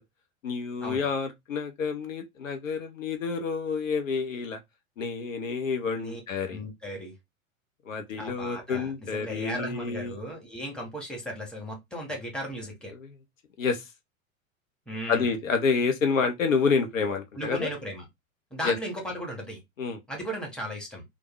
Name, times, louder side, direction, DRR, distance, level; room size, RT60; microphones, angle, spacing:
voice 1, 0.4-4.6 5.0-6.6 7.9-10.1 13.6-13.8 15.1-17.7 18.6-18.8 19.8-20.0, left 5 dB, 70° left, 0.8 m, -28 dB
voice 2, 6.5-7.1 8.1-12.9 14.9-15.3 17.3-18.0 18.5-19.6 20.1-21.0, equal, ahead, 1.4 m, -36 dB
3.4 x 2.4 x 3.1 m
figure-of-eight pair, 90°, 41 cm